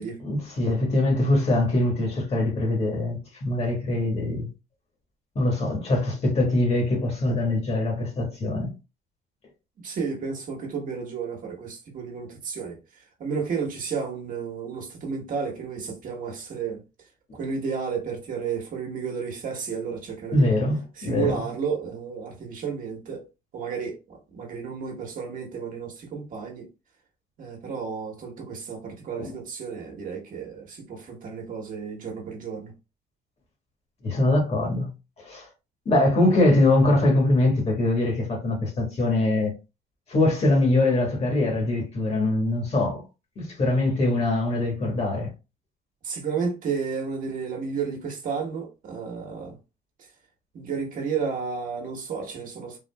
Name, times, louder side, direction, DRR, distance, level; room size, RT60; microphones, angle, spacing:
voice 1, 0.2-4.5 5.3-8.7 20.3-21.3 29.2-29.3 34.0-34.9 35.2-35.5 35.8-39.5 40.1-43.0 43.4-45.3, left 2 dB, 40° left, 1.4 m, -23 dB
voice 2, 9.8-16.8 17.3-20.5 21.0-23.2 23.5-26.7 27.4-32.7 46.0-49.6 50.5-52.8, right 6 dB, 55° right, 1.2 m, -32 dB
3.6 x 2.5 x 2.2 m
cardioid pair, 110°, 17 cm